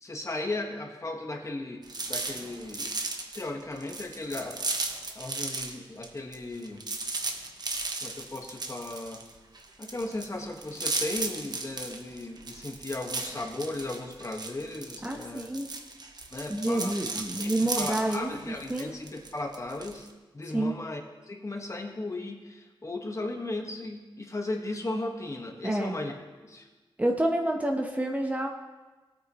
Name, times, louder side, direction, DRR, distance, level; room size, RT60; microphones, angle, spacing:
voice 1, 0.0-2.9 3.3-4.7 5.1-6.8 8.0-9.3 9.8-15.5 16.3-17.0 17.4-20.1 20.3-26.1 26.4-26.7, left 2 dB, 35° left, 2 dB, 1.5 m, -36 dB
sound 1, 1.8-5.8 6.0-20.1, right 3 dB, 50° right, 1.1 m, -36 dB
voice 2, 15.0-15.7 16.5-18.3 18.7-18.9 20.5-20.7 25.6-26.0 27.0-28.5, right 1 dB, 15° right, 2 dB, 1.0 m, -28 dB
18.0 x 8.7 x 3.1 m, 1.2 s
wide cardioid pair, 100°, 9 cm